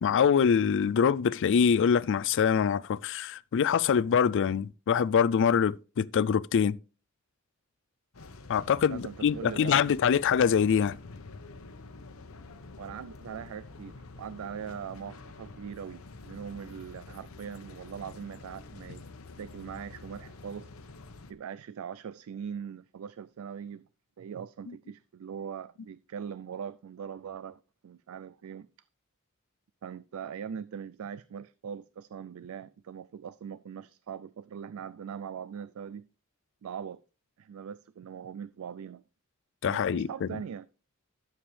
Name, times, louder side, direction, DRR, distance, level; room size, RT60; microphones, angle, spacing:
voice 1, 0.0-6.8 8.5-11.0 39.6-40.3, left 7 dB, 60° left, 0.4 m, -24 dB
sound 1, 8.1-21.3, left 3 dB, 75° left, 1.0 m, -48 dB
voice 2, 8.9-10.0 12.8-19.0 19.4-20.7 21.3-23.9 24.2-28.7 29.8-36.1 36.6-37.0 37.4-39.0 39.6-40.7, right 7 dB, 75° right, 0.4 m, -41 dB
11.5 x 7.2 x 3.3 m
head